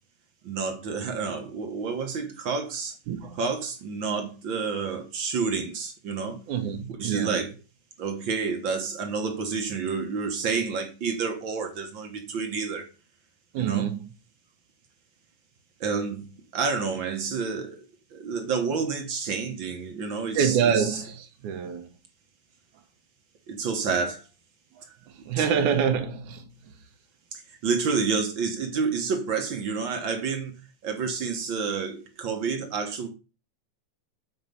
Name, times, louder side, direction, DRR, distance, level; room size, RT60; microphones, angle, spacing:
voice 1, 0.4-2.9 3.4-6.4 7.0-7.5 8.0-12.9 13.6-13.9 15.8-16.3 16.5-17.8 18.1-21.0 23.5-24.2 25.4-25.5 27.3-33.1, right 5 dB, 55° right, 1.5 m, -29 dB
voice 2, 3.1-3.4 6.5-7.4 13.5-14.0 20.4-21.9 25.3-26.5, right 7 dB, 80° right, 2.6 m, -26 dB
8.1 x 4.6 x 5.4 m
omnidirectional pair, 3.5 m